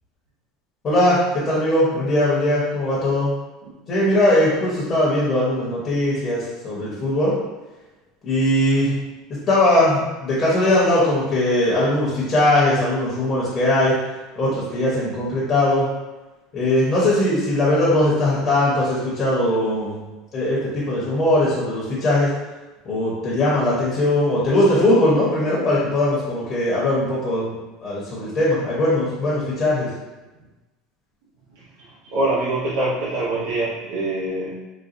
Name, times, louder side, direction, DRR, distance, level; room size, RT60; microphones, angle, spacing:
voice 1, 0.8-3.3 3.9-7.4 8.2-8.9 9.5-13.9 14.4-15.9 16.5-20.0 20.3-22.3 22.8-27.5 27.8-29.9, left 1 dB, 25° left, -7 dB, 0.9 m, -20 dB
voice 2, 32.0-34.6, right 2 dB, 85° right, -7 dB, 0.7 m, -24 dB
4.1 x 2.2 x 2.5 m, 1.1 s
cardioid pair, 170°, 0 cm